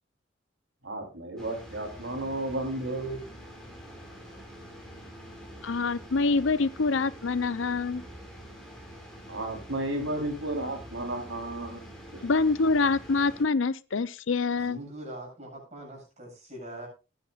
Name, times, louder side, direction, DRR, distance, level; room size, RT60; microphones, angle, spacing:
voice 1, 0.8-3.2 9.3-11.8, right 1 dB, 75° right, 3.7 m, -33 dB
sound 1, 1.4-13.4, equal, 5° left, 4.4 m, -46 dB
voice 2, 5.6-8.0 12.2-14.8, left 4 dB, 80° left, 0.6 m, -26 dB
voice 3, 14.5-16.9, right 1 dB, 35° right, 7.7 m, -42 dB
20.0 x 10.0 x 2.4 m
head